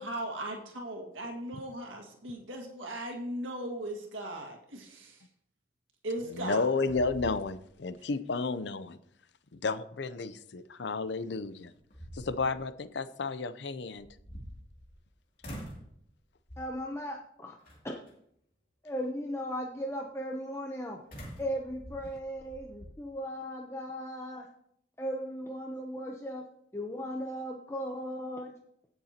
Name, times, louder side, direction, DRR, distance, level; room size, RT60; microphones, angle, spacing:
voice 1, 0.0-5.2 6.0-6.6, right 1 dB, 90° right, 1 dB, 1.9 m, -38 dB
sound 1, 6.2-6.6 6.9-7.9 8.3-8.4 11.0-11.1 11.7-12.6 13.9-15.1 15.4-15.9 16.5-16.9 17.6-18.1 21.1-22.9, equal, 45° left, 2.5 m, -46 dB
voice 2, 6.3-9.0 9.5-11.7 12.1-14.1, left 3 dB, 65° left, 13 dB, 0.6 m, -32 dB
voice 3, 16.6-17.6 17.8-18.0 18.8-21.0 21.4-24.5 25.0-26.4 26.7-28.5, equal, 15° left, 1 dB, 0.7 m, -37 dB
16.5 x 6.9 x 2.9 m, 0.71 s
head